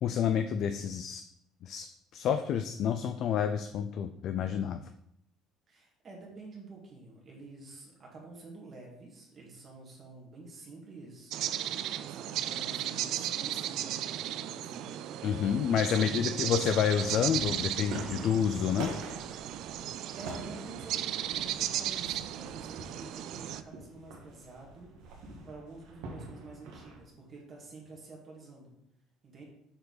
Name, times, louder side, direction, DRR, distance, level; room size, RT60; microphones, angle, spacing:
voice 1, 0.0-1.2 1.6-1.9 2.1-4.8 15.2-18.9, left 8 dB, 50° left, 8 dB, 0.3 m, -29 dB
voice 2, 5.7-11.6 12.0-14.9 15.9-16.7 20.2-24.9 25.5-28.7 29.2-29.4, right 3 dB, 30° right, -2 dB, 1.9 m, -49 dB
sound 1, 11.3-23.6, right 12 dB, 60° right, 0.3 m, -35 dB
sound 2, 17.0-27.0, right 2 dB, 75° right, 1.5 m, -45 dB
6.6 x 4.6 x 4.0 m, 0.76 s
cardioid pair, 155°, 0 cm